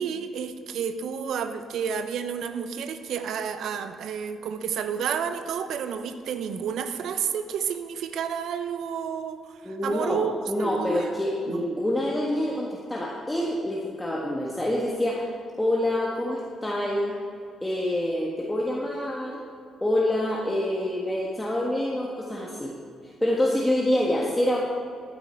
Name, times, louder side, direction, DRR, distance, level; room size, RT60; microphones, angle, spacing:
voice 1, 0.0-10.3 10.6-11.1 11.5-11.6, right 7 dB, 75° right, 9 dB, 0.8 m, -30 dB
voice 2, 9.6-15.3 15.6-17.1 17.6-19.4 19.8-22.7 23.2-24.6, left 1 dB, 10° left, -3 dB, 1.5 m, -26 dB
14.0 x 8.6 x 4.4 m, 2.2 s
cardioid pair, 90°, 0 cm